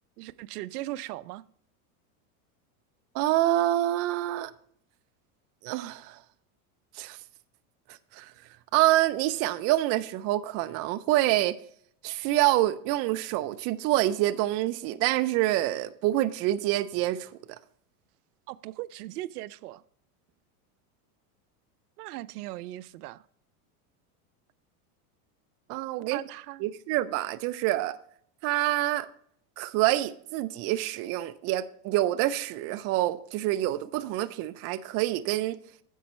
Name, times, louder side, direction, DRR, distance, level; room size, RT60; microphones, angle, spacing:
voice 1, 0.2-1.4 18.5-19.8 22.0-23.2 26.0-26.6, right 16 dB, 85° right, 0.6 m, -38 dB
voice 2, 3.1-4.5 5.6-6.2 6.9-7.2 7.9-8.3 8.7-11.6 12.0-17.6 25.7-26.2 26.6-28.0 28.4-29.1 29.6-35.6, right 15 dB, 35° right, 0.5 m, -27 dB
10.0 x 7.8 x 3.1 m
supercardioid pair, 135°, 45 cm